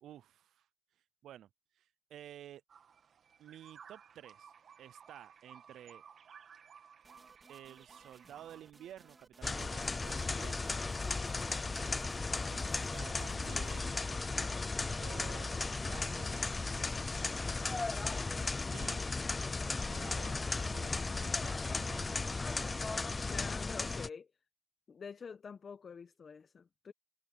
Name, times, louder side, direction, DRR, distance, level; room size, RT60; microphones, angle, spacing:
voice 1, 0.0-0.7 1.2-1.5 1.7-2.6 3.4-4.5 4.8-6.0 7.5-10.7 12.5-14.3 15.0-16.6 18.7-19.1 19.9-20.4 20.7-22.4, right 11 dB, 75° right, 0.6 m, -53 dB
sound 1, 2.7-8.6, right 7 dB, 55° right, 2.0 m, -57 dB
sound 2, 7.0-13.9, right 3 dB, 25° right, 4.2 m, -62 dB
sound 3, 9.4-24.1, left 3 dB, 25° left, 0.5 m, -36 dB
voice 2, 23.3-24.3 24.9-26.9, left 6 dB, 45° left, 1.2 m, -47 dB
cardioid pair, 90°, 0 cm